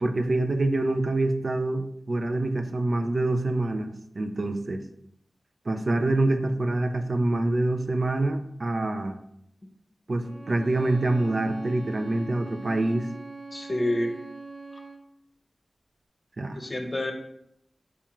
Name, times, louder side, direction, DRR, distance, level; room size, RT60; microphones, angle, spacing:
voice 1, 0.0-4.8 5.7-9.2 10.1-13.1 16.4-16.6, right 2 dB, 55° right, 6 dB, 0.4 m, -26 dB
Bowed string instrument, 10.2-15.1, right 3 dB, 30° right, 0.8 m, -42 dB
voice 2, 13.5-14.1 16.6-17.1, left 1 dB, 35° left, 3 dB, 0.7 m, -28 dB
4.4 x 3.6 x 3.0 m, 0.73 s
wide cardioid pair, 60°, 0 cm